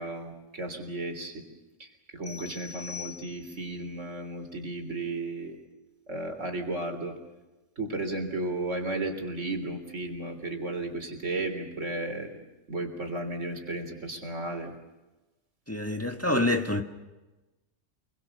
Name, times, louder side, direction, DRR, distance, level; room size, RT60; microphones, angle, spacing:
voice 1, 0.0-1.4 1.8-5.6 6.1-7.2 7.8-12.4 12.7-14.7, right 2 dB, 85° right, 4.0 m, -34 dB
sound 1, 2.2-3.8, left 7 dB, 80° left, 4.4 m, -43 dB
voice 2, 15.7-16.8, left 1 dB, 10° left, 1.4 m, -26 dB
28.5 x 22.5 x 6.8 m
omnidirectional pair, 1.2 m